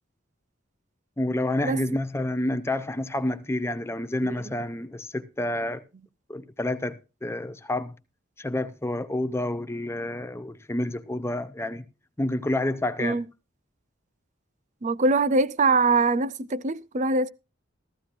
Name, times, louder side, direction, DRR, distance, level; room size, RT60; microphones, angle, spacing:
voice 1, 1.2-5.8 6.3-7.9 8.4-11.8 12.2-13.2, left 1 dB, 15° left, 0.6 m, -29 dB
voice 2, 14.8-17.3, right 3 dB, 40° right, 0.5 m, -23 dB
14.5 x 14.5 x 2.5 m
head